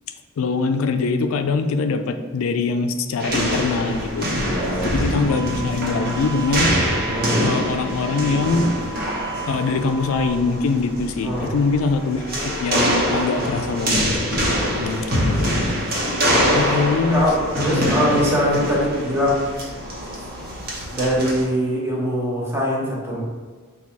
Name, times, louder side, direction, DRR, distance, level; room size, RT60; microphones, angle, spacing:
voice 1, 0.4-4.3 4.8-6.7 7.4-8.7 9.5-12.2 12.6-14.3 14.8-15.5 16.5-17.3 17.6-18.0, left 4 dB, 70° left, 8 dB, 0.3 m, -23 dB
sound 1, 3.2-21.5, equal, 45° right, 1.0 m, -24 dB
voice 2, 4.4-5.3 7.1-7.4 11.2-11.5 14.7-14.8 17.1-19.4 20.9-23.2, equal, 10° right, -5 dB, 1.0 m, -22 dB
sound 2, 5.3-10.3, right 8 dB, 5° left, 0.4 m, -35 dB
4.2 x 2.3 x 4.5 m, 1.5 s
head